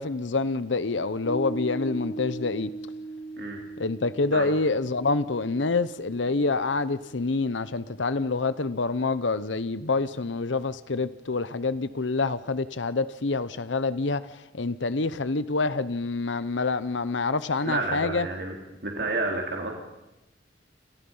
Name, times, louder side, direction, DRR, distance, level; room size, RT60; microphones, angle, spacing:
voice 1, 0.0-2.7 3.8-18.3, left 3 dB, 85° left, 0.9 m, -27 dB
Piano, 1.2-8.0, right 3 dB, 70° left, 2.6 m, -39 dB
voice 2, 17.7-18.5 18.8-19.7, right 2 dB, 60° right, 3.7 m, -30 dB
29.5 x 28.0 x 5.6 m
head